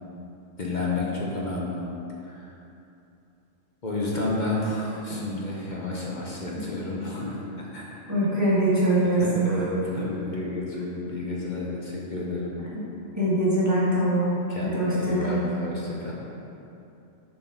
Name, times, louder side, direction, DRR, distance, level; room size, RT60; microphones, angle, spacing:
voice 1, 0.6-1.8 2.2-2.5 3.8-8.0 9.0-12.5 14.5-16.1, left 2 dB, 40° left, -4 dB, 1.0 m, -31 dB
voice 2, 8.1-9.6 12.7-12.8 13.2-14.3 14.6-15.4, right 1 dB, 15° right, -9 dB, 1.6 m, -23 dB
6.9 x 4.5 x 5.9 m, 2.8 s
omnidirectional pair, 1.3 m